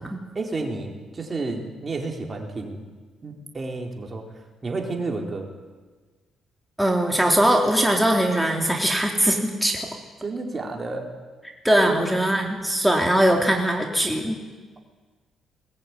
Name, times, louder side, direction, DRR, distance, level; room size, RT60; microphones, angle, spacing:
voice 1, 0.3-2.8 3.2-5.5 10.2-11.1 11.9-12.0, right 3 dB, 30° right, 2 dB, 4.3 m, -31 dB
voice 2, 6.8-9.9 11.6-14.4, right 1 dB, ahead, 0 dB, 3.5 m, -21 dB
21.5 x 20.0 x 9.9 m, 1.4 s
cardioid pair, 90°, 0 cm